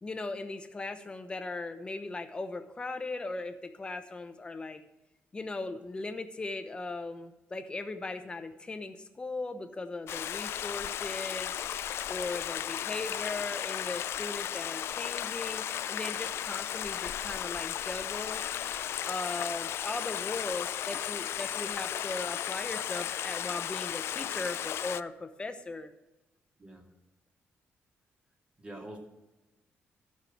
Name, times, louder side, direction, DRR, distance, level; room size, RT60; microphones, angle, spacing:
voice 1, 0.0-4.8 5.3-11.5 12.1-18.4 19.0-25.9, left 3 dB, 20° left, 8 dB, 0.9 m, -38 dB
Stream, 10.1-25.0, left 10 dB, 75° left, 0.3 m, -35 dB
voice 2, 28.6-29.0, right 1 dB, 25° right, 1 dB, 2.3 m, -44 dB
12.5 x 5.7 x 7.1 m, 1.0 s
cardioid pair, 140°, 4 cm